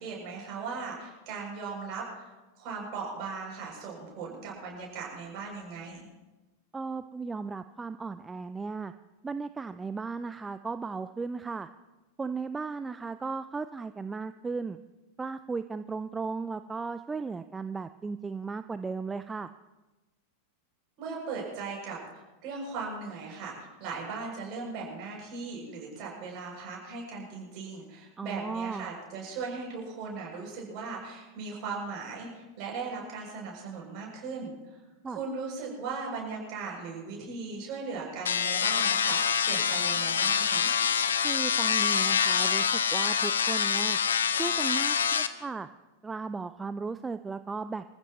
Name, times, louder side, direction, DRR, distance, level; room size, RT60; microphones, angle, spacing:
voice 1, 0.0-2.3 2.6-6.1 21.0-34.8 35.0-40.7, right 4 dB, 40° right, -2 dB, 7.5 m, -38 dB
voice 2, 6.7-8.9 9.2-11.7 12.2-14.8 15.2-19.5 28.2-28.9 35.0-35.2 41.2-44.0 44.3-45.7 46.0-47.9, right 4 dB, 15° right, 12 dB, 0.4 m, -36 dB
sound 1, 38.3-45.3, left 7 dB, 70° left, 0.8 m, -26 dB
26.5 x 15.0 x 3.1 m, 1.1 s
figure-of-eight pair, 90°, 0 cm